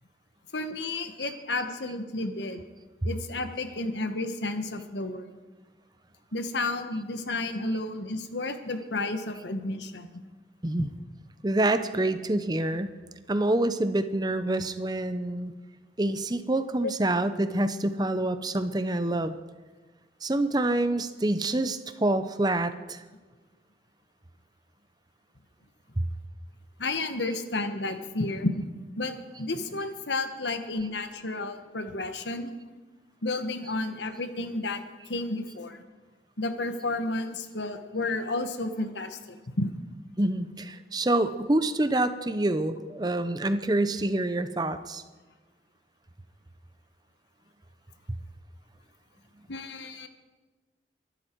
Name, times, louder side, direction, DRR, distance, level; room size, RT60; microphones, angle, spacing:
voice 1, 0.5-2.6 3.0-5.3 6.3-10.1 16.8-16.9 26.8-28.6 29.0-32.5 33.2-34.8 35.1-35.8 36.4-39.7 49.5-50.1, left 2 dB, 80° left, 8 dB, 1.4 m, -31 dB
voice 2, 11.4-12.9 13.3-15.5 16.0-19.4 20.2-23.0 40.2-45.0, right 1 dB, 20° right, 11 dB, 0.7 m, -27 dB
23.5 x 12.0 x 4.6 m, 1.3 s
head